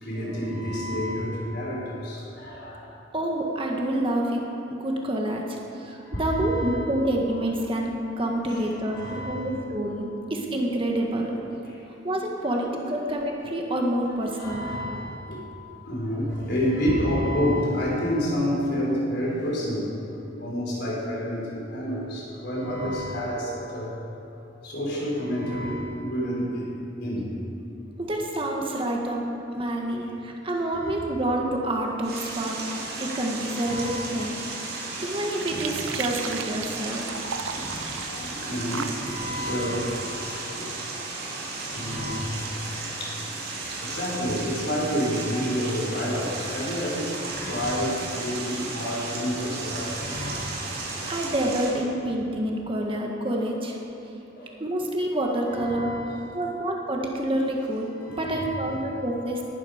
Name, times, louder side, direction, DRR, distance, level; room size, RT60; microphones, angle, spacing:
voice 1, 0.0-2.9 6.0-6.8 8.2-9.4 11.6-11.7 12.7-12.9 14.2-15.4 15.9-19.9 20.4-23.9 24.6-26.7 27.0-27.3 28.4-29.0 29.3-29.4 30.6-30.9 33.5-34.0 37.7-40.0 40.5-40.6 41.7-42.6 43.0-43.2 43.8-50.5 50.9-51.0 54.3-54.6 55.5-56.2 58.0-58.8, equal, 55° left, -4 dB, 4.5 m, -29 dB
voice 2, 3.1-4.4 4.7-11.3 12.0-14.7 28.0-29.2 29.5-32.6 33.0-34.4 35.0-37.1 51.1-53.8 54.6-55.9 56.3-59.5, right 1 dB, 25° right, 0 dB, 1.6 m, -27 dB
sound 1, 32.0-51.7, right 3 dB, 50° right, 3.6 m, -34 dB
sound 2, 34.2-41.0, right 6 dB, 85° right, 0.7 m, -39 dB
19.0 x 12.5 x 5.1 m, 2.9 s
head